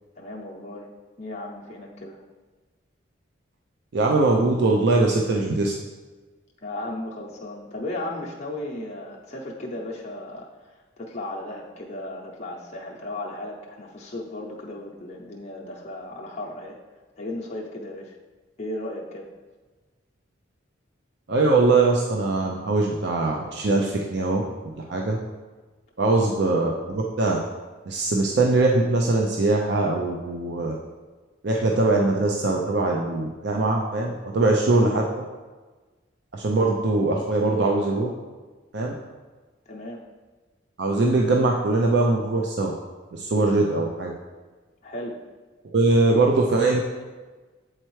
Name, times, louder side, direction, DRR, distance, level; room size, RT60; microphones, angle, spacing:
voice 1, 0.2-0.9 1.2-2.2 6.6-16.8 17.2-18.2 18.6-19.3 26.0-26.2 39.7-40.0 44.8-45.2, left 1 dB, 35° left, -3 dB, 0.7 m, -35 dB
voice 2, 3.9-5.7 21.3-25.2 26.0-27.4 27.9-30.8 31.4-35.0 36.3-38.1 38.7-38.9 40.8-42.7 43.1-44.1 45.6-46.8, right 2 dB, 60° right, 0 dB, 0.5 m, -22 dB
7.6 x 4.4 x 3.1 m, 1.3 s
head